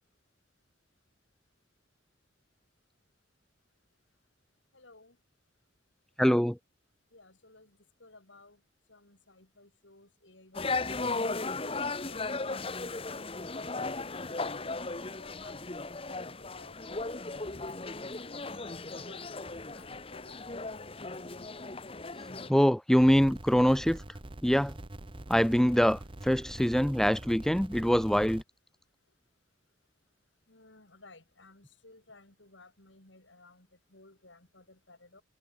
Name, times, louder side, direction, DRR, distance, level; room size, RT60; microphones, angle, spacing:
voice 1, 4.7-5.2 7.1-8.6 8.9-11.2 11.6-12.2 13.5-14.7 15.2-18.4 18.8-19.4 19.7-21.1 30.5-35.2, left 2 dB, 70° left, 5.0 m, -57 dB
voice 2, 6.2-6.6 22.5-24.0 24.4-24.8 25.3-28.4, equal, ahead, 0.4 m, -24 dB
sound 1, 10.5-22.5, left 3 dB, 30° left, 1.2 m, -36 dB
sound 2, 23.0-28.4, right 1 dB, 25° right, 1.0 m, -44 dB
head